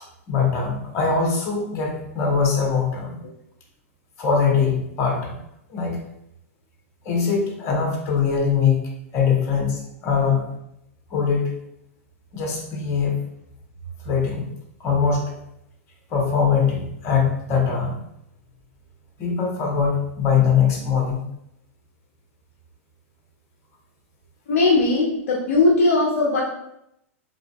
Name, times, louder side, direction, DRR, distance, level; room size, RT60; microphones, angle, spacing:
voice 1, 0.3-3.1 4.2-5.3 5.7-6.0 7.0-8.8 9.1-10.5 11.1-11.5 12.3-13.2 14.0-14.5 14.8-15.2 16.1-18.0 19.2-21.2, left 6 dB, 35° left, 0 dB, 1.0 m, -22 dB
voice 2, 24.5-26.4, left 3 dB, 65° left, -2 dB, 0.5 m, -19 dB
3.8 x 2.8 x 2.2 m, 0.80 s
figure-of-eight pair, 100°, 8 cm